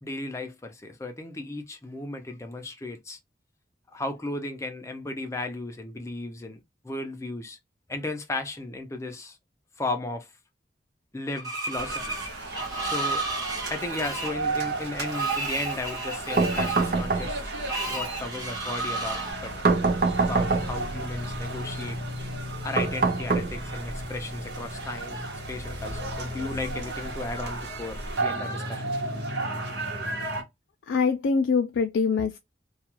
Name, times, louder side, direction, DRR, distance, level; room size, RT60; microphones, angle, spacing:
voice 1, 0.0-3.2 3.9-7.6 7.9-9.4 9.8-10.3 11.1-12.0 12.8-13.2 13.7-17.4 17.9-19.5 20.2-22.0 22.6-25.2 25.5-29.0, left 2 dB, 15° left, 0.5 m, -35 dB
Screech, 11.4-19.3, right 3 dB, 20° right, 0.8 m, -32 dB
sound 1, 11.7-30.4, right 2 dB, 70° right, 1.0 m, -34 dB
sound 2, 16.4-17.6 19.6-20.9 22.8-23.9, right 3 dB, 50° right, 0.4 m, -25 dB
voice 2, 30.9-32.4, left 5 dB, 90° left, 0.3 m, -24 dB
2.4 x 2.3 x 2.9 m
head